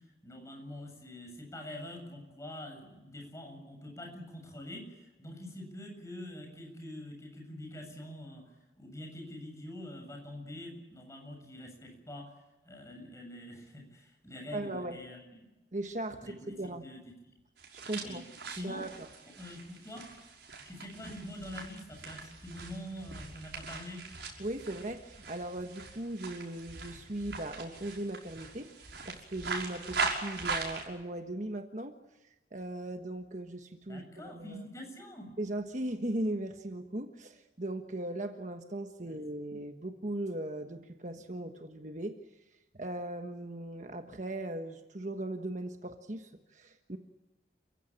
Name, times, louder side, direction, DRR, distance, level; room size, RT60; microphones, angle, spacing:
voice 1, 0.2-8.5 8.8-12.3 12.6-15.4 16.2-16.5 16.8-17.3 18.0-18.2 18.5-18.9 19.4-20.3 20.7-24.0 33.9-35.3 39.0-39.2, left 1 dB, 15° left, 2 dB, 7.6 m, -45 dB
voice 2, 14.5-15.0 15.7-16.9 17.7-18.2 18.6-18.9 24.4-28.7 29.0-32.0 32.5-34.7 35.4-42.2 42.7-47.0, right 1 dB, 45° right, 6 dB, 1.4 m, -38 dB
sound 1, 17.6-30.8, right 4 dB, 75° right, 5.9 m, -41 dB
29.5 x 16.0 x 8.8 m, 1.0 s
head